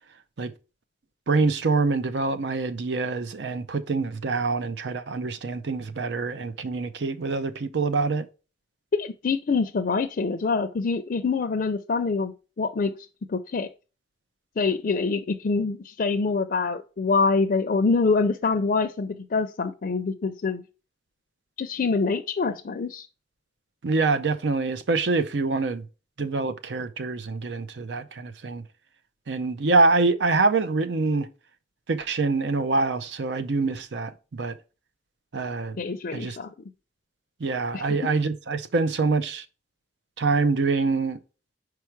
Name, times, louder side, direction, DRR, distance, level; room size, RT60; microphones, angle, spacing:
voice 1, 1.3-8.3 23.8-25.8 26.2-28.6 29.3-31.3 31.9-34.5 35.3-35.8 36.1-36.4 37.4-39.4 40.2-41.2, right 3 dB, 80° right, 0.6 m, -25 dB
voice 2, 8.9-12.9 13.3-13.7 14.6-20.6 21.6-23.1 35.8-36.5 37.7-38.1, left 4 dB, 50° left, 0.4 m, -25 dB
4.8 x 4.7 x 4.5 m
head